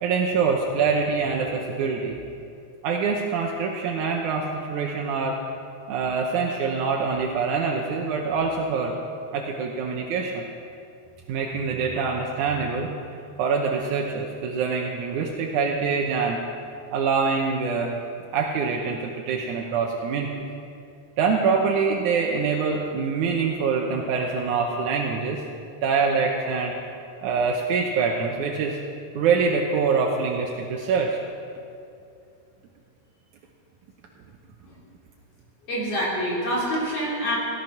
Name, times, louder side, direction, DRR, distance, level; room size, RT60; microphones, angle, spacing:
voice 1, 0.0-2.2 2.8-5.4 5.9-9.0 9.3-10.4 11.3-12.9 13.4-16.4 16.9-18.0 18.3-20.3 21.2-25.4 25.8-26.7 27.2-28.8 29.2-31.2, right 5 dB, 80° right, 0 dB, 2.4 m, -25 dB
voice 2, 35.7-37.4, equal, 50° left, -5 dB, 4.5 m, -26 dB
16.5 x 11.0 x 5.9 m, 2.5 s
omnidirectional pair, 3.5 m